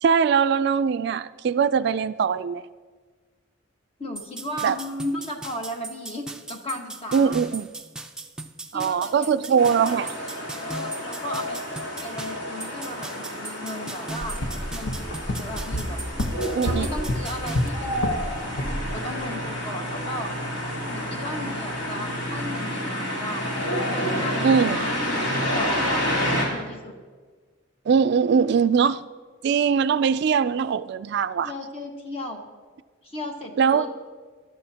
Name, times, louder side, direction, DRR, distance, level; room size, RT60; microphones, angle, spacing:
voice 1, 0.0-2.6 4.6-4.8 7.1-7.7 8.7-10.1 16.5-16.9 24.4-24.8 27.9-29.0 29.4-31.5 33.6-33.9, right 6 dB, 60° right, 0.3 m, -21 dB
voice 2, 4.0-7.4 8.7-10.2 10.4-11.6 12.0-14.4 14.7-16.0 16.6-18.5 18.9-20.3 20.9-23.5 23.9-25.0 25.5-26.9 31.4-32.4 33.0-33.9, left 1 dB, 30° left, 1.5 m, -35 dB
sound 1, 4.2-17.7, right 3 dB, 5° right, 0.5 m, -38 dB
sound 2, 9.6-26.5, equal, 60° left, 3.4 m, -29 dB
sound 3, 14.2-18.3 18.6-18.9, left 1 dB, 80° left, 1.0 m, -28 dB
19.5 x 12.5 x 2.8 m
head